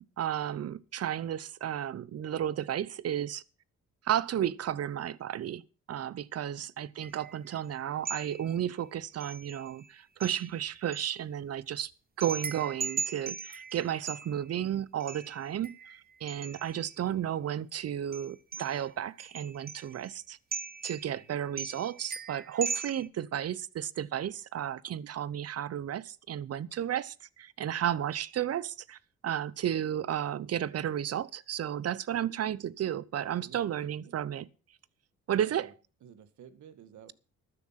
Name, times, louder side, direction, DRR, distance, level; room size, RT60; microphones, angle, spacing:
voice 1, 0.0-3.4 4.0-5.6 5.9-11.9 12.2-20.4 20.8-34.5 35.3-35.7, right 10 dB, 55° right, 0.8 m, -33 dB
sound 1, 7.0-7.5 8.0-8.7 9.2-9.9 10.2-11.1 12.2-14.5 15.0-16.8 18.1-18.8 19.2-20.1 20.5-21.3 21.6-23.1, right 5 dB, 30° right, 1.2 m, -39 dB
voice 2, 21.1-21.5 33.4-34.1 35.4-35.7 36.0-37.1, right 8 dB, 75° right, 1.9 m, -53 dB
13.0 x 10.0 x 5.8 m
cardioid pair, 90°, 30 cm